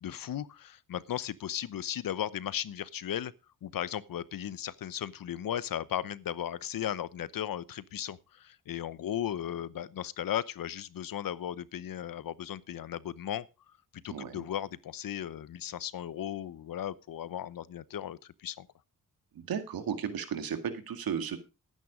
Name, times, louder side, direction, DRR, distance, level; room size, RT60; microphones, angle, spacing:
voice 1, 0.0-3.3 3.6-13.5 13.9-18.7, left 10 dB, 75° left, 0.9 m, -36 dB
voice 2, 14.1-14.4 19.3-21.4, right 7 dB, 85° right, 2.1 m, -34 dB
12.5 x 9.3 x 5.0 m
cardioid pair, 70°, 35 cm